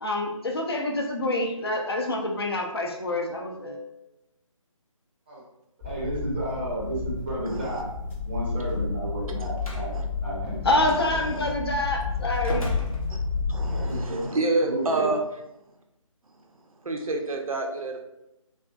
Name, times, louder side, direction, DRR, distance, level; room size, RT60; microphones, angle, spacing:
voice 1, 0.0-3.8 10.6-12.7, left 2 dB, 45° left, 1 dB, 0.4 m, -27 dB
sound 1, 5.8-14.0, left 4 dB, 20° left, 0.8 m, -31 dB
voice 2, 5.8-7.9 8.2-9.9 10.2-10.9 13.7-14.3 14.6-15.1, right 1 dB, 20° right, -6 dB, 0.5 m, -32 dB
voice 3, 7.5-7.8 9.4-9.5 9.9-10.0 11.0-11.5 13.1-13.2 13.5-15.2 16.8-18.0, right 2 dB, 80° right, 3 dB, 0.5 m, -29 dB
Slam, 9.6-9.9 10.8-11.0 12.4-13.6, left 1 dB, 85° left, 0.7 m, -33 dB
2.4 x 2.3 x 2.3 m, 0.89 s
figure-of-eight pair, 155°, 18 cm